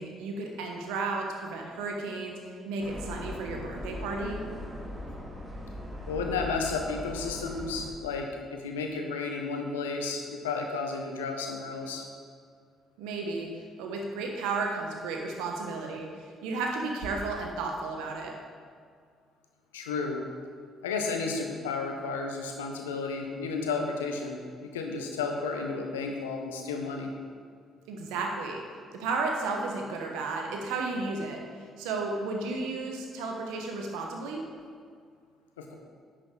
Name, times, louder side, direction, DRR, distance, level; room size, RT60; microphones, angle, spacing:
voice 1, 0.0-2.4 2.7-4.4 13.0-13.5 13.8-18.3 27.9-28.6 28.9-31.4 31.8-34.5, right 3 dB, 75° right, 1 dB, 1.3 m, -33 dB
sound 1, 2.8-7.9, left 1 dB, 30° right, 2.5 m, -39 dB
voice 2, 6.1-12.0 19.7-20.2 20.8-27.1 35.6-35.7, left 4 dB, 90° left, 3 dB, 0.9 m, -32 dB
10.5 x 6.4 x 3.9 m, 2.1 s
hypercardioid pair, 50°, 0 cm